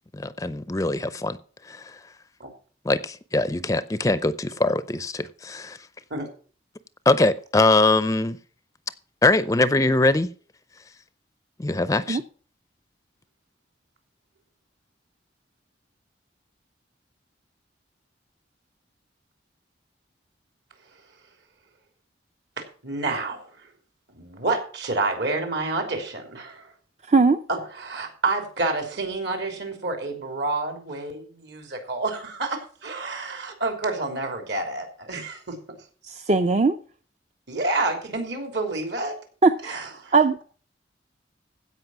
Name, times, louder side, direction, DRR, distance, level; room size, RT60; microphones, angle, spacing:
voice 1, 0.1-1.4 1.7-1.8 2.9-5.8 7.1-8.4 9.2-10.3 11.6-12.2, left 2 dB, 20° left, 0.5 m, -22 dB
voice 2, 22.6-23.5 24.2-26.7 27.5-35.6 37.5-39.1 39.6-40.1, right 3 dB, 65° right, 3.3 m, -29 dB
voice 3, 27.1-27.4 36.0-36.8 39.4-39.8 40.1-40.4, right 4 dB, 35° right, 0.5 m, -19 dB
16.0 x 5.4 x 7.2 m
head